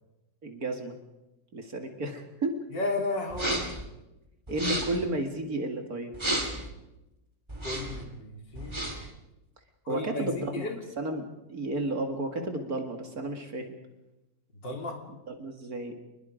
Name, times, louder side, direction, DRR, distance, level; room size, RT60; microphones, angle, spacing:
voice 1, 0.4-1.0 1.5-2.6 4.5-6.1 9.9-10.7 11.0-13.8 15.3-15.9, right 2 dB, 55° right, 5 dB, 2.5 m, -32 dB
voice 2, 2.7-3.7 7.6-8.8 9.9-10.8 14.6-15.0, left 2 dB, 80° left, 2 dB, 3.9 m, -33 dB
sound 1, 3.3-3.8 4.5-5.1 6.1-6.7 7.5-8.0 8.5-9.1, right 1 dB, 15° right, 2.8 m, -32 dB
27.5 x 21.0 x 5.1 m, 0.98 s
omnidirectional pair, 1.9 m